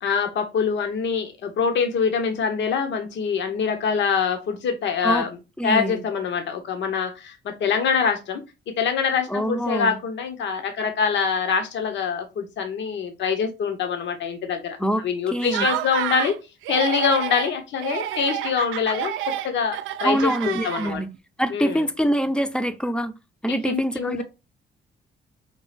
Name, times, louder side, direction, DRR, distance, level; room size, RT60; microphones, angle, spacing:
voice 1, 0.0-5.3 5.6-8.4 8.8-14.8 15.0-16.3 16.7-19.1 19.4-21.0 21.5-21.8 23.5-24.2, left 6 dB, 65° left, 0.8 m, -24 dB
voice 2, 5.6-6.0 9.3-10.0 14.8-15.0 15.3-15.7 20.0-21.1 21.4-23.1 23.4-24.2, equal, 5° left, 0.5 m, -24 dB
Laughter, 15.4-16.4 16.6-17.5 17.8-21.2, right 12 dB, 80° right, 0.4 m, -29 dB
5.2 x 2.3 x 3.2 m
cardioid pair, 90°, 20 cm